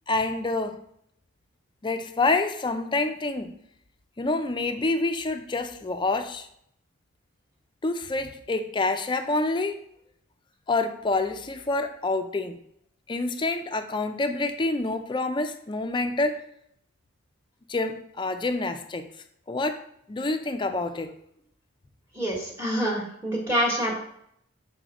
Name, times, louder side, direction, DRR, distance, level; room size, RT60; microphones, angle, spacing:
voice 1, 0.1-0.8 1.8-3.5 4.2-6.5 7.8-9.7 10.7-12.6 13.1-16.4 17.7-19.1 19.5-19.8 20.1-21.1, left 2 dB, 25° left, 8 dB, 0.4 m, -27 dB
voice 2, 22.1-24.0, equal, 15° right, -2 dB, 1.1 m, -26 dB
6.2 x 4.2 x 4.0 m, 0.72 s
head